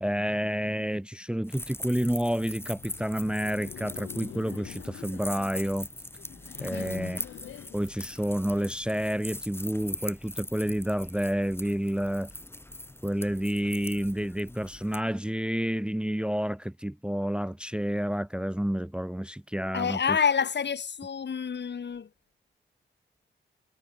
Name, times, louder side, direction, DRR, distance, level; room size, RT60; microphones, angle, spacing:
voice 1, 0.0-5.9 6.6-7.2 7.7-12.3 13.0-20.2, equal, 5° right, 0.8 m, -29 dB
sound 1, 1.4-15.0, left 1 dB, 10° left, 1.5 m, -42 dB
Laughter, 2.5-8.7, left 11 dB, 85° left, 1.7 m, -47 dB
voice 2, 6.7-7.2 19.7-22.1, left 6 dB, 60° left, 2.4 m, -28 dB
supercardioid pair, 45°, 20 cm